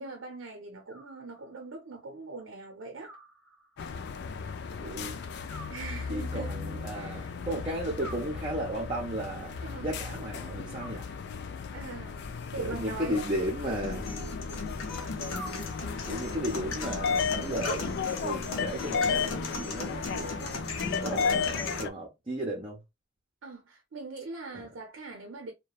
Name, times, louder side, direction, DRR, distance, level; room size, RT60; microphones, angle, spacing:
voice 1, 0.0-3.2 5.7-6.5 6.9-7.3 9.6-9.9 11.7-12.2 12.5-13.3 14.1-14.4 16.0-16.1 19.7-20.0 23.4-25.5, right 3 dB, 75° right, 0.5 m, -42 dB
Animal, 0.9-1.8 3.0-4.0 5.5-6.6 8.0-9.0 10.7-11.6 12.9-14.0 15.3-16.2 17.5-18.4, right 1 dB, 10° left, 0.7 m, -50 dB
sound 1, 3.8-21.9, left 5 dB, 55° left, 0.3 m, -35 dB
voice 2, 4.8-5.2 6.1-9.5 9.8-11.1 12.6-14.1 16.0-20.7 21.0-22.8 24.5-24.7, right 1 dB, 25° right, 0.6 m, -34 dB
sound 2, 13.8-21.8, left 3 dB, 85° left, 0.7 m, -37 dB
2.8 x 2.2 x 2.3 m
head